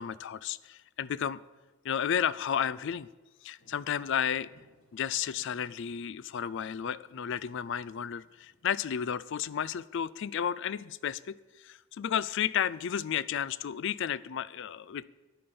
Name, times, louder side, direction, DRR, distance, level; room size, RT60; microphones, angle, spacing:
voice 1, 0.0-1.4 1.8-3.1 3.4-4.5 4.9-15.0, left 8 dB, 55° left, 19 dB, 0.4 m, -32 dB
sound 1, 3.6-8.7, left 1 dB, 75° left, 1.7 m, -64 dB
9.7 x 8.7 x 6.9 m, 1.2 s
head